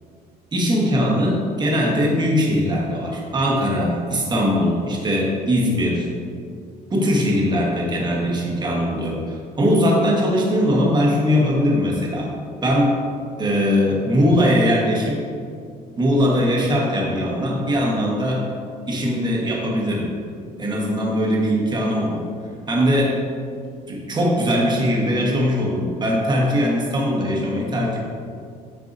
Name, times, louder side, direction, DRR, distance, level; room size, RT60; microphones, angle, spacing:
voice 1, 0.5-6.1 6.9-12.3 12.6-13.0 13.4-15.2 16.0-18.5 18.9-20.1 20.6-22.2 22.7-23.2 23.9-28.0, equal, 25° right, -3 dB, 1.3 m, -20 dB
7.9 x 4.7 x 2.6 m, 2.3 s
cardioid pair, 110°, 17 cm